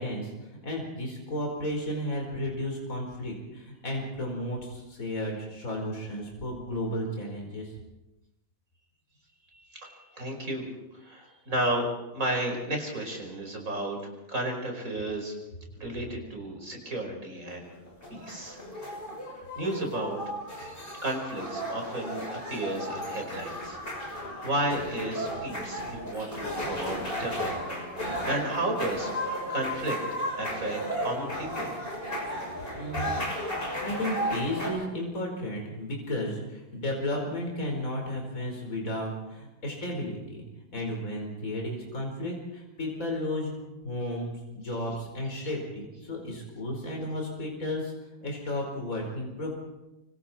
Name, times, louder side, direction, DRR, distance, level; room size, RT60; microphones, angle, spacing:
voice 1, 0.0-7.7 32.7-33.2 33.8-40.4 40.7-43.5 43.8-47.9 48.2-49.6, left 1 dB, 40° left, 0 dB, 5.2 m, -33 dB
voice 2, 9.5-10.7 10.9-11.9 12.1-15.4 15.8-17.7 18.1-19.0 19.3-20.2 21.0-30.0 30.4-31.7, right 1 dB, 40° right, 2 dB, 5.5 m, -33 dB
sound 1, 17.7-34.7, equal, 25° left, 6.7 m, -34 dB
25.5 x 25.0 x 4.5 m, 0.99 s
omnidirectional pair, 2.2 m